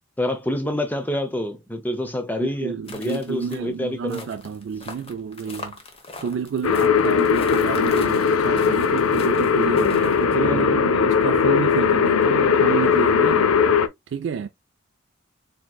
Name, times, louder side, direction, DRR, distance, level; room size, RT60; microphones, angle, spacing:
voice 1, 0.2-4.3 7.0-7.2 10.3-10.7, left 1 dB, 10° left, 0.6 m, -27 dB
voice 2, 2.4-5.8 6.2-13.5 14.1-14.5, right 6 dB, 55° right, 0.3 m, -30 dB
sound 1, 2.9-10.2, left 3 dB, 25° left, 0.9 m, -41 dB
sound 2, 6.6-13.9, left 6 dB, 85° left, 0.5 m, -19 dB
4.4 x 3.6 x 2.2 m
head